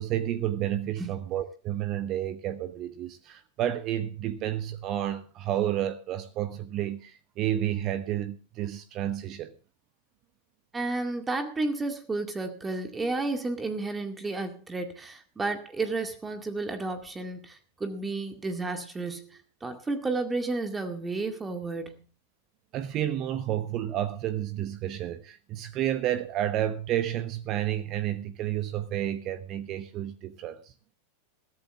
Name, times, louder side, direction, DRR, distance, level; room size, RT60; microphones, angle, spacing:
voice 1, 0.0-9.5 22.7-30.7, right 12 dB, 35° right, 1.1 m, -31 dB
voice 2, 10.7-22.0, right 3 dB, 15° right, 2.1 m, -32 dB
22.0 x 14.0 x 2.5 m
figure-of-eight pair, 90°, 0 cm